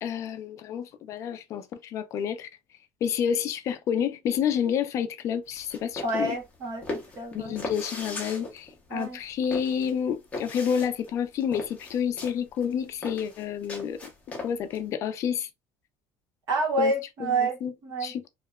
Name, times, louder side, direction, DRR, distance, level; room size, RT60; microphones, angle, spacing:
voice 1, 0.0-2.5 3.0-6.4 7.3-14.0 14.4-15.5 16.8-16.9 17.2-17.7 18.0-18.3, left 8 dB, 45° left, 0.3 m, -29 dB
sound 1, 5.5-14.8, left 3 dB, 20° left, 0.8 m, -39 dB
voice 2, 6.0-7.6 8.9-9.2 16.5-18.1, right 2 dB, 45° right, 1.1 m, -28 dB
2.7 x 2.1 x 2.3 m
cardioid pair, 145°, 7 cm